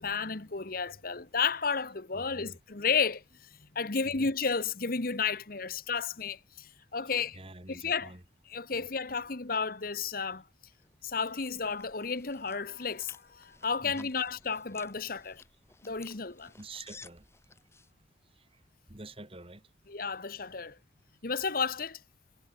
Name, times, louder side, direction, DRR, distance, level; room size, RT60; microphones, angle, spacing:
voice 1, 0.0-3.2 3.7-7.4 7.7-8.1 8.5-10.4 11.0-15.4 15.8-16.5 19.9-20.8 21.2-22.0, left 5 dB, 50° left, 1.3 m, -32 dB
voice 2, 2.1-2.6 4.1-4.3 7.3-8.2 8.7-8.9 13.8-14.2 16.6-17.6 18.3-18.6 18.9-19.6, right 2 dB, 30° right, 3.0 m, -48 dB
sound 1, 10.8-17.9, left 3 dB, 15° left, 2.6 m, -55 dB
head